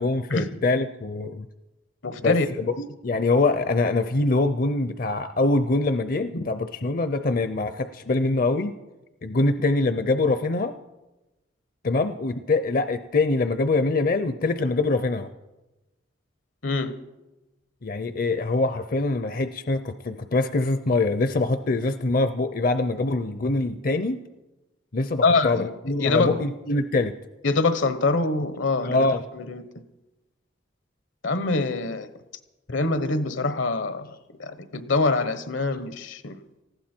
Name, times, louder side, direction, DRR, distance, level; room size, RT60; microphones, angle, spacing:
voice 1, 0.0-1.4 2.2-8.7 9.2-10.7 11.8-15.3 17.8-24.2 24.9-27.1 28.8-29.2, left 2 dB, 45° left, 0.5 m, -24 dB
voice 2, 2.0-2.5 16.6-17.0 25.2-25.7 26.0-26.3 27.4-29.1 29.3-29.6 31.2-32.1 32.7-34.1 34.4-36.4, left 3 dB, 80° left, 1.1 m, -24 dB
19.0 x 15.0 x 4.5 m
head